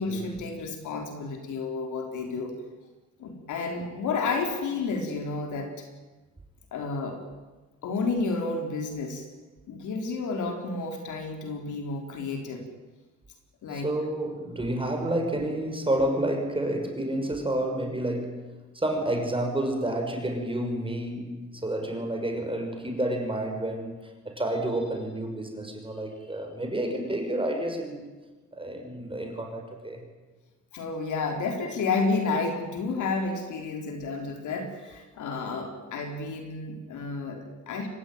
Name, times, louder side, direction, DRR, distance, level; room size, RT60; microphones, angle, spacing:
voice 1, 0.0-2.5 3.2-5.9 6.7-7.2 7.8-9.3 9.7-12.6 13.6-13.9 30.7-37.9, left 3 dB, 75° left, 3 dB, 4.0 m, -31 dB
voice 2, 13.7-18.4 18.7-24.0 24.2-28.0 28.5-30.0, right 1 dB, 15° right, 4 dB, 6.1 m, -30 dB
25.0 x 20.0 x 9.4 m, 1.2 s
cardioid pair, 90°, 30 cm